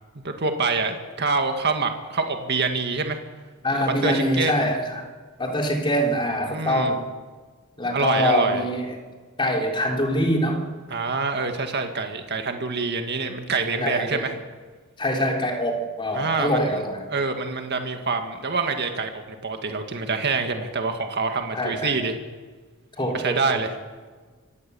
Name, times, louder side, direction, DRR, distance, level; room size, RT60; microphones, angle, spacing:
voice 1, 0.2-3.2 4.0-4.7 6.5-6.9 7.9-8.7 10.9-14.3 16.1-16.8 17.1-22.2 23.0-23.8, right 4 dB, 50° right, 5 dB, 2.0 m, -26 dB
voice 2, 3.6-5.1 5.4-7.1 7.8-9.0 9.4-10.6 13.8-14.3 15.0-17.0 21.5-21.9 23.0-23.6, equal, 25° left, 1 dB, 3.5 m, -24 dB
25.5 x 16.5 x 7.1 m, 1.4 s
head